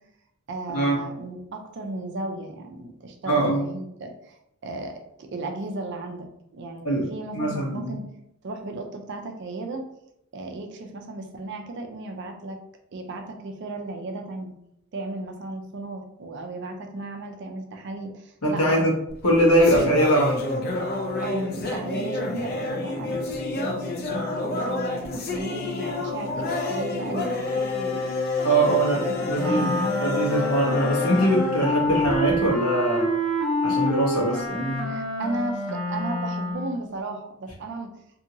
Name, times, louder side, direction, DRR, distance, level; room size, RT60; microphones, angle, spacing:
voice 1, 0.5-4.4 4.6-8.0 8.4-9.8 10.3-12.6 12.9-14.5 14.9-18.9 21.2-23.2 23.5-29.1 29.4-29.9 33.7-33.8 34.8-37.9, right 2 dB, 50° right, 4 dB, 0.4 m, -35 dB
voice 2, 3.2-3.7 6.8-7.1 7.3-7.9 18.4-18.9 19.2-20.4 28.4-33.1 33.6-34.9, right 1 dB, 80° left, -3 dB, 1.0 m, -22 dB
sound 1, 19.1-32.5, left 3 dB, 45° left, 0.4 m, -29 dB
Wind instrument woodwind instrument, 29.4-36.8, left 1 dB, ahead, 0.6 m, -28 dB
2.7 x 2.7 x 2.6 m, 0.80 s
head